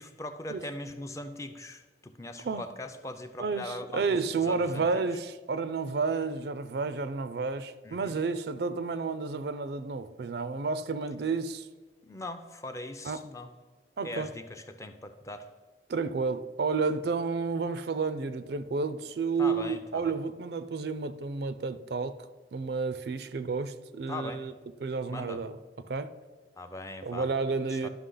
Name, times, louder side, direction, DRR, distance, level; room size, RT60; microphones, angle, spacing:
voice 1, 0.0-4.2 4.4-4.8 7.8-8.2 12.0-13.5 14.0-15.5 19.4-20.1 24.1-24.4 25.1-25.4 26.6-27.3 27.7-27.9, left 2 dB, 15° left, 0.4 m, -40 dB
voice 2, 3.4-11.7 13.0-13.2 14.0-14.3 15.9-22.2 22.5-24.5 24.8-25.5 25.8-26.1 27.0-27.9, right 4 dB, 60° right, 0.4 m, -31 dB
11.0 x 5.9 x 3.8 m
head